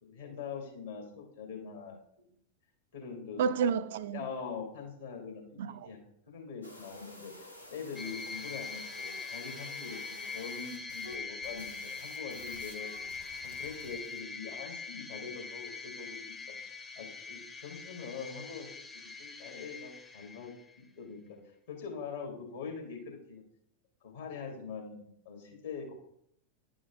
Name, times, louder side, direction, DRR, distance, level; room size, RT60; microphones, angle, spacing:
voice 1, 0.0-2.0 2.9-3.4 4.1-5.4 5.8-6.0 6.3-12.9 13.4-18.7 18.9-20.5 21.0-21.4 21.7-23.4 24.0-25.9, left 5 dB, 60° left, 2.3 m, -43 dB
voice 2, 3.4-4.2 5.6-5.9, right 6 dB, 55° right, 0.4 m, -30 dB
sound 1, 6.6-11.2 11.4-14.2, left 1 dB, 90° left, 1.3 m, -51 dB
sound 2, 7.9-20.8, left 5 dB, 15° left, 0.7 m, -43 dB
10.5 x 5.0 x 3.7 m
figure-of-eight pair, 90°, 0 cm